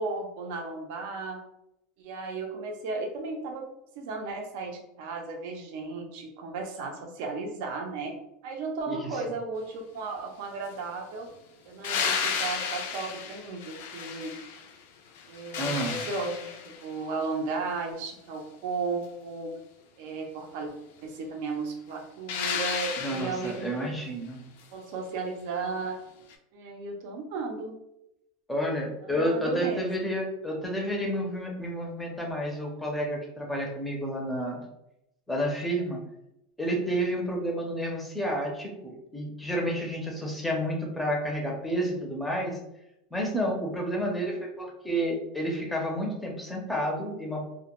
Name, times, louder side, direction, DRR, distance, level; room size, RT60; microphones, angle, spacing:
voice 1, 0.0-1.4 2.0-3.7 4.0-8.1 8.4-11.3 11.6-14.4 15.3-19.5 20.0-20.7 21.0-23.9 24.7-26.0 26.5-27.8 29.0-30.1 43.8-44.2, right 3 dB, 65° right, 2 dB, 0.5 m, -35 dB
voice 2, 8.9-9.2 15.6-16.0 23.0-24.4 28.5-34.6 35.3-36.0 36.6-42.6 43.1-47.5, equal, 5° left, -1 dB, 0.5 m, -30 dB
sound 1, 11.8-14.8 15.2-16.9 22.3-23.7 26.3-26.4, left 6 dB, 75° left, 0.3 m, -33 dB
2.1 x 2.1 x 2.9 m, 0.84 s
supercardioid pair, 145°, 0 cm